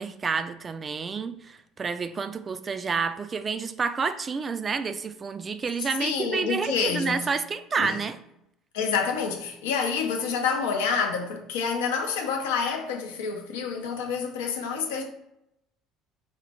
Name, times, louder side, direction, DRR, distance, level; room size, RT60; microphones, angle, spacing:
voice 1, 0.0-8.2, right 5 dB, 35° right, 0.3 m, -29 dB
voice 2, 6.0-7.3 7.8-8.0 8.7-15.0, left 6 dB, 80° left, 0.6 m, -28 dB
4.2 x 2.1 x 2.9 m
hypercardioid pair, 65°, 0 cm